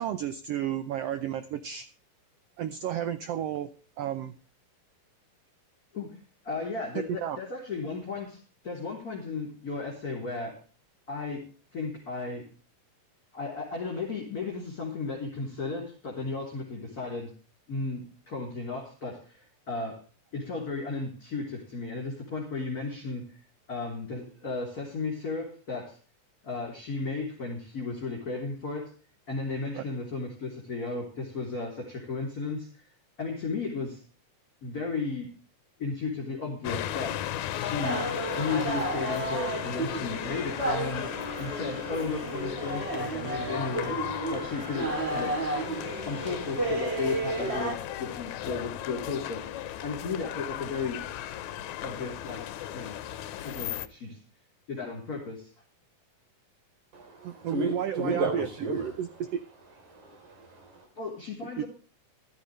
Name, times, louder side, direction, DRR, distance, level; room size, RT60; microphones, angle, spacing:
voice 1, 0.0-1.9 2.6-3.7 4.0-4.4 6.9-7.4 29.7-29.8 57.2-59.4 61.6-61.7, right 10 dB, 85° right, 11 dB, 1.4 m, -32 dB
voice 2, 6.4-10.6 11.1-11.4 11.7-12.4 13.3-17.3 17.7-20.0 20.3-23.2 23.7-26.0 26.4-28.9 29.3-32.7 33.2-34.0 34.6-35.3 35.8-37.2 37.5-38.0 38.4-41.1 41.4-44.0 44.3-45.3 46.0-49.4 49.8-51.0 51.8-52.4 52.7-53.0 53.3-54.2 54.7-55.5 61.0-61.6, left 4 dB, 30° left, -1 dB, 3.6 m, -34 dB
sound 1, 36.6-53.9, left 11 dB, 75° left, 2.0 m, -36 dB
sound 2, 37.8-47.7, right 2 dB, 20° right, 2.7 m, -32 dB
voice 3, 56.9-58.9 59.9-60.9, right 2 dB, 65° right, 4 dB, 5.1 m, -33 dB
15.5 x 12.5 x 3.2 m, 0.38 s
omnidirectional pair, 3.7 m